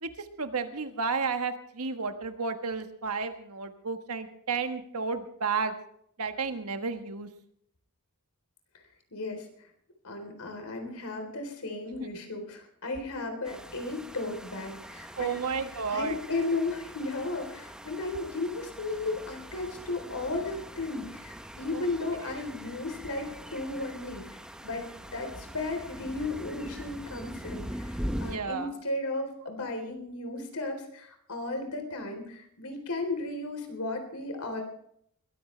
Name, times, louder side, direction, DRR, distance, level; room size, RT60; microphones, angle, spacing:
voice 1, 0.0-5.7 6.2-7.3 12.0-12.1 15.2-16.2 21.7-21.9 22.2-22.3 28.2-28.7, right 5 dB, 75° right, 7 dB, 1.4 m, -32 dB
voice 2, 9.1-9.5 10.0-15.4 15.9-24.2 24.6-34.6, left 2 dB, 75° left, 5 dB, 3.8 m, -35 dB
sound 1, 13.4-28.4, equal, 5° right, 0.9 m, -42 dB
21.5 x 14.5 x 3.3 m, 0.68 s
head